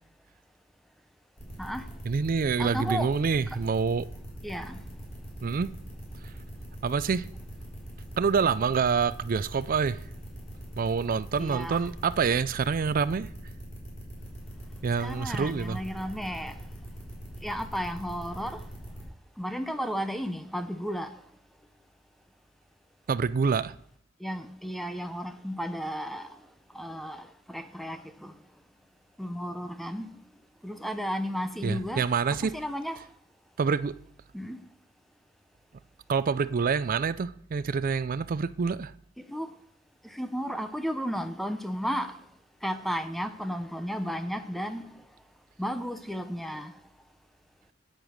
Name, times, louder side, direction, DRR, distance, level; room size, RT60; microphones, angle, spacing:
sound 1, 1.4-19.0, right 1 dB, 35° left, 4.2 m, -42 dB
voice 1, 2.0-4.0 5.4-5.7 6.2-6.3 6.8-7.3 8.2-10.0 10.8-13.3 14.8-15.8 23.1-23.7 31.6-32.5 33.6-33.9 36.1-38.9, right 5 dB, 45° right, 0.4 m, -26 dB
voice 2, 2.6-3.1 4.4-4.8 11.4-11.9 15.0-16.6 17.4-18.6 19.4-21.1 24.2-26.3 26.7-28.3 29.2-30.1 30.6-32.0 32.4-33.0 34.3-34.6 39.3-39.5 40.1-42.1 42.6-44.8 45.6-46.7, equal, ahead, 0.6 m, -33 dB
8.9 x 7.8 x 6.4 m
head